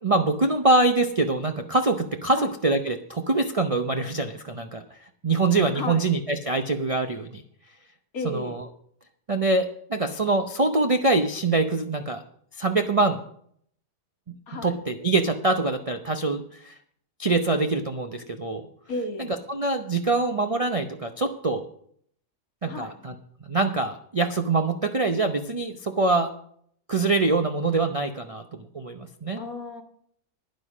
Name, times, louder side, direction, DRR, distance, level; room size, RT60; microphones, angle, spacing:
voice 1, 0.0-4.8 5.2-7.4 8.2-8.6 9.3-12.2 12.6-13.2 14.3-14.4 14.6-16.7 17.2-18.6 19.5-21.7 22.6-23.1 23.5-26.3 26.9-29.4, right 3 dB, 60° right, 6 dB, 0.3 m, -24 dB
voice 2, 5.7-6.1 8.1-8.6 14.5-14.8 18.9-19.3 22.7-22.9 29.4-29.8, left 2 dB, 60° left, 6 dB, 1.7 m, -33 dB
11.5 x 10.0 x 5.0 m, 0.64 s
omnidirectional pair, 1.8 m